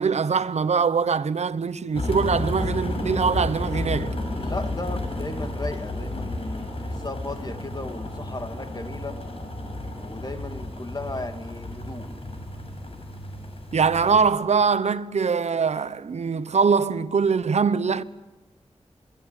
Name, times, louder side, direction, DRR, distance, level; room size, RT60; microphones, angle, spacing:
voice 1, 0.0-4.1 13.7-18.0, right 5 dB, 75° right, 0.9 m, -23 dB
sound 1, 1.9-14.3, left 1 dB, 55° left, 7.7 m, -32 dB
voice 2, 4.4-9.2 10.0-12.1, left 2 dB, 35° left, 2.4 m, -35 dB
27.0 x 21.0 x 9.9 m
wide cardioid pair, 80°, 11 cm